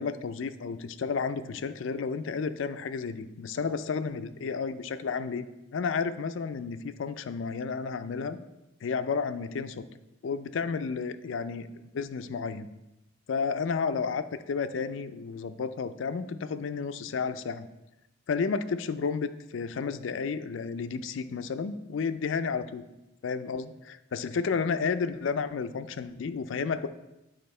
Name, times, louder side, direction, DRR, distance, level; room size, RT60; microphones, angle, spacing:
voice 1, 0.0-5.5 5.7-8.4 8.8-9.9 10.2-11.7 11.9-12.7 13.3-17.7 18.3-22.8 23.2-26.9, left 5 dB, 75° left, 11 dB, 0.4 m, -32 dB
8.9 x 3.5 x 4.2 m, 0.96 s
head